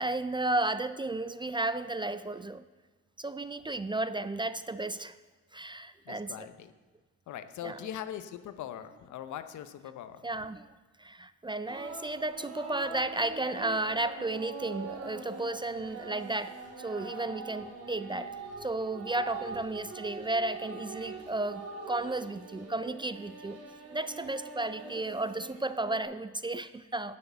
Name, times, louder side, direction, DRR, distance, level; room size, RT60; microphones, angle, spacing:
voice 1, 0.0-2.6 3.2-5.1 5.5-6.3 7.6-7.8 10.2-10.7 11.0-18.3 18.6-23.6 23.9-27.2, right 2 dB, 15° right, 13 dB, 0.4 m, -33 dB
voice 2, 6.0-6.7 7.3-10.3, left 10 dB, 75° left, 11 dB, 0.8 m, -41 dB
sound 1, 11.7-26.0, right 4 dB, 55° right, 2.2 m, -43 dB
9.7 x 6.7 x 8.0 m, 1.3 s
cardioid pair, 90°, 30 cm